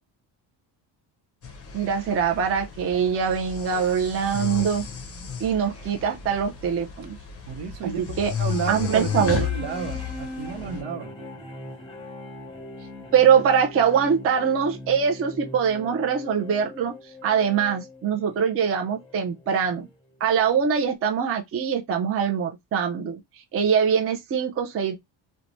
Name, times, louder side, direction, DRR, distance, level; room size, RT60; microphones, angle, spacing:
sound 1, 1.4-10.8, left 7 dB, 30° left, 0.5 m, -33 dB
voice 1, 1.7-4.8 5.4-7.2 7.8-8.3 8.7-9.4 13.1-16.9 17.2-19.9 20.2-23.2 23.5-24.9, right 7 dB, 30° right, 0.4 m, -23 dB
voice 2, 7.5-11.1, right 6 dB, 75° right, 0.8 m, -32 dB
sound 2, 9.1-20.0 20.6-20.7, left 1 dB, 10° left, 0.8 m, -41 dB
3.0 x 2.2 x 2.5 m
cardioid pair, 150°, 48 cm